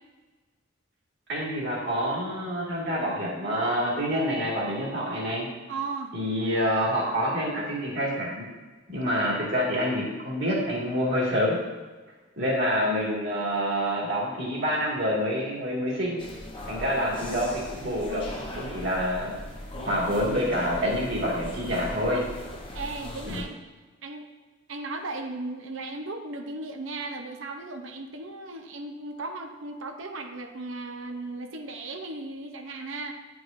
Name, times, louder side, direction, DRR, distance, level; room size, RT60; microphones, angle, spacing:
voice 1, 1.3-5.5 6.1-8.5 8.9-11.6 12.4-16.2 16.7-18.2 18.5-19.4 19.8-22.2 23.3-23.4, equal, 55° right, -4 dB, 1.9 m, -27 dB
voice 2, 5.7-6.2 22.1-22.2 22.7-23.7 24.0-24.3 24.7-33.1, right 3 dB, 80° right, 4 dB, 0.7 m, -36 dB
sound 1, 16.2-23.4, left 1 dB, 25° left, 0.8 m, -38 dB
9.5 x 4.8 x 2.6 m, 1.3 s
head